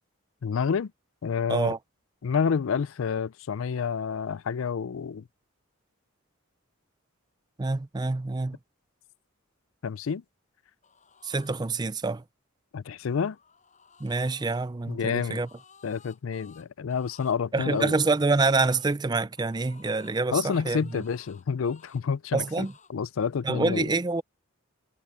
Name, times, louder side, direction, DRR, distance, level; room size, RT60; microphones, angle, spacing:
voice 1, 0.4-0.9 1.2-1.7 2.2-5.3 9.8-10.2 12.7-13.4 14.9-15.4 15.8-18.0 20.3-23.9, left 6 dB, 65° left, 0.4 m, -29 dB
voice 2, 7.6-8.6 11.2-12.2 14.0-15.5 17.5-20.4 20.7-20.8 22.3-22.7 23.4-24.2, right 3 dB, 20° right, 0.4 m, -26 dB
sound 1, 10.8-11.6 13.0-14.6 15.1-19.0 19.3-20.2 20.6-22.0 22.3-22.9, left 6 dB, 35° left, 6.2 m, -56 dB
head